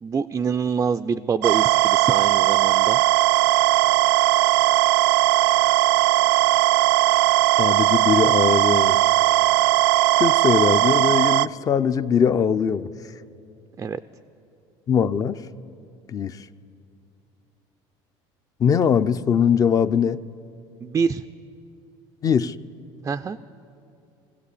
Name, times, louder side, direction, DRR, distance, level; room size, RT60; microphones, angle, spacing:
voice 1, 0.0-3.0 13.8-14.0 20.8-21.2 23.0-23.4, right 6 dB, 20° right, 8 dB, 0.4 m, -25 dB
sound 1, 1.4-11.5, right 20 dB, 85° right, 0.4 m, -18 dB
voice 2, 7.6-9.0 10.2-12.9 14.9-15.4 16.1-16.4 18.6-20.2 22.2-22.5, left 7 dB, 30° left, 13 dB, 0.5 m, -21 dB
21.0 x 16.0 x 8.4 m, 2.6 s
cardioid pair, 130°, 12 cm